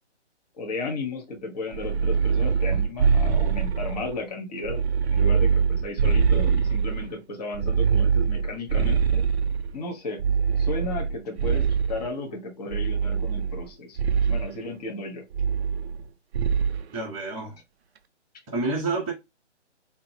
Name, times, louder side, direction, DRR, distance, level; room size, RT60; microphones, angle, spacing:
voice 1, 0.5-4.8 5.1-9.2 9.7-10.2 10.6-15.2, left 2 dB, 5° left, 0.5 m, -34 dB
sound 1, 1.7-4.2 4.6-7.1 7.5-9.7 10.2-12.1 12.7-13.7 14.0-14.5 15.3-16.1 16.3-16.8, right 6 dB, 60° right, 0.5 m, -23 dB
voice 2, 16.9-17.6 18.5-19.1, right 3 dB, 15° right, 0.9 m, -28 dB
3.8 x 3.0 x 2.7 m
hypercardioid pair, 160°, 36 cm